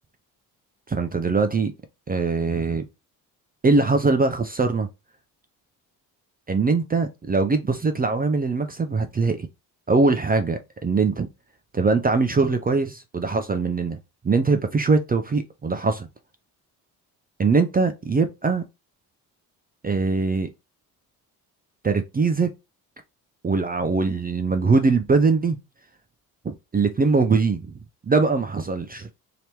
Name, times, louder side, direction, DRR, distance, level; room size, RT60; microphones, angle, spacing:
voice 1, 0.9-1.7 2.1-2.8 3.6-4.9 6.5-9.5 9.9-11.3 11.7-14.0 14.2-16.1 17.4-18.6 19.8-20.5 21.8-22.5 23.4-25.6 26.4-27.7 28.0-29.1, right 4 dB, 20° right, 0.4 m, -22 dB
2.9 x 2.9 x 3.3 m
hypercardioid pair, 50°, 48 cm